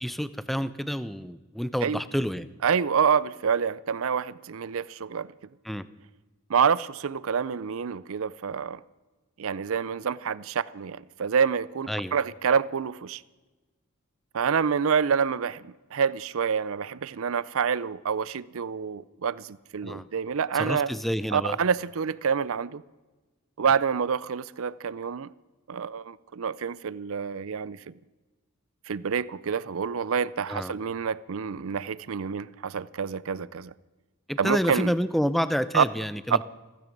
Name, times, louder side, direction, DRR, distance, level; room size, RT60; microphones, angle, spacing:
voice 1, 0.0-2.5 5.6-5.9 11.9-12.1 19.8-20.1 20.5-21.6 30.5-30.8 34.3-36.4, equal, ahead, 0.5 m, -29 dB
voice 2, 2.6-5.3 6.5-8.8 9.4-13.2 14.3-20.9 21.3-22.8 23.6-25.3 25.7-27.9 28.9-33.7 34.4-34.9 35.7-35.8, right 6 dB, 70° right, 0.5 m, -27 dB
16.0 x 15.0 x 5.3 m
head